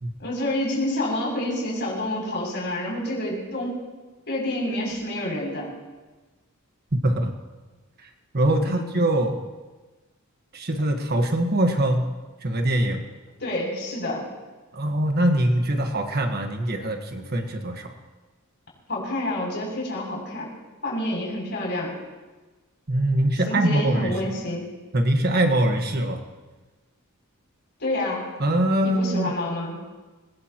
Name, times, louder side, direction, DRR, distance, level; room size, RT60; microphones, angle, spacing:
voice 1, 0.2-3.7 4.3-5.7 8.6-8.9 13.4-14.2 18.9-20.5 20.8-22.0 23.5-24.7 27.8-28.3 28.8-29.8, left 1 dB, 55° left, -3 dB, 7.0 m, -28 dB
voice 2, 6.9-7.3 8.0-8.1 8.3-9.4 10.5-12.1 12.4-13.0 14.7-17.9 22.9-24.1 24.9-26.2 28.4-29.3, right 1 dB, 45° right, 4 dB, 1.4 m, -23 dB
21.5 x 20.5 x 3.0 m, 1.3 s
head